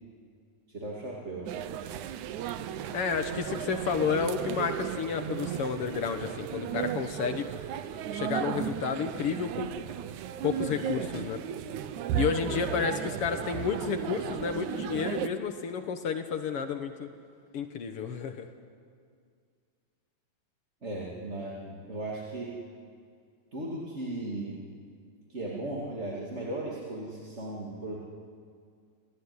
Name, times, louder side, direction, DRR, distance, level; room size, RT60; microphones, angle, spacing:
voice 1, 0.7-1.5 20.8-22.5 23.5-24.6 25.3-28.0, right 2 dB, 20° right, -4 dB, 2.5 m, -36 dB
sound 1, 1.5-15.3, right 10 dB, 70° right, 2.0 m, -35 dB
voice 2, 2.9-7.5 8.1-9.7 10.4-11.4 12.2-17.1 17.5-18.5, left 6 dB, 60° left, 7 dB, 1.5 m, -31 dB
28.0 x 17.0 x 9.7 m, 2.2 s
omnidirectional pair, 4.0 m